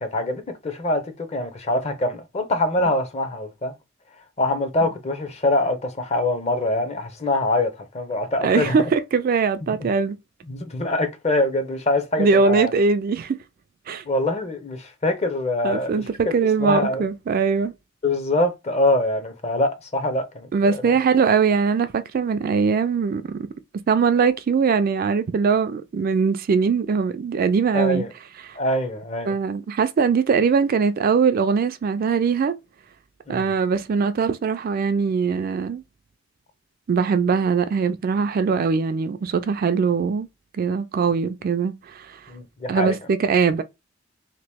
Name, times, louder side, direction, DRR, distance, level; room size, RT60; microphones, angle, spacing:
voice 1, 0.0-3.7 4.4-8.9 9.6-9.7 10.5-12.7 14.1-17.1 18.0-20.8 27.7-28.1 28.5-29.3 33.3-33.5 42.3-42.9, left 1 dB, 35° left, 0.7 m, -24 dB
voice 2, 8.4-10.2 12.2-13.4 13.9-14.0 15.6-17.7 20.5-23.5 23.9-28.1 28.4-28.6 29.3-32.6 33.3-35.8 36.9-40.3 40.5-42.2 42.7-43.6, right 5 dB, 50° right, 0.3 m, -21 dB
2.9 x 2.9 x 3.4 m
head